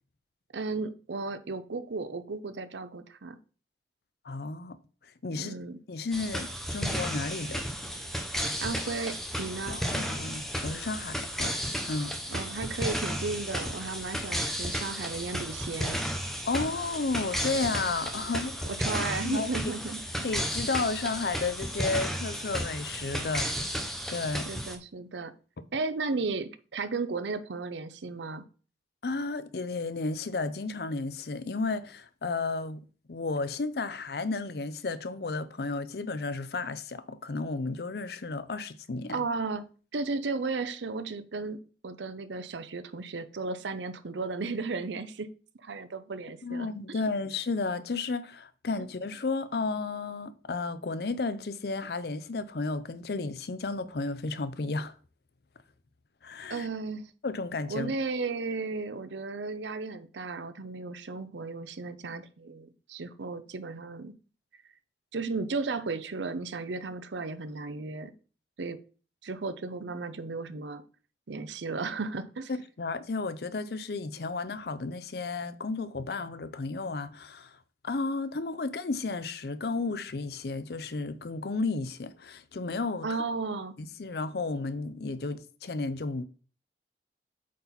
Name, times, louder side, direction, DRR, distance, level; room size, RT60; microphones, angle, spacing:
voice 1, 0.5-3.4 5.4-5.8 8.6-9.8 12.3-16.0 18.7-20.3 24.5-25.3 25.7-28.4 39.1-39.6 39.9-45.3 45.6-47.0 56.5-57.1 57.7-64.1 65.1-68.1 68.6-68.8 69.2-70.8 71.3-72.5 83.0-83.7, right 3 dB, 80° right, 0.6 m, -34 dB
voice 2, 4.2-4.8 5.2-5.6 5.9-7.6 9.7-11.6 11.9-12.1 16.4-18.7 19.2-19.5 20.2-23.8 24.1-24.5 29.0-32.8 33.1-39.2 46.4-55.0 56.2-56.7 57.2-57.9 72.5-77.6 77.8-83.2 83.8-86.2, left 3 dB, 60° left, 0.6 m, -33 dB
sound 1, 6.1-24.8, equal, ahead, 0.8 m, -33 dB
8.4 x 4.0 x 4.2 m
head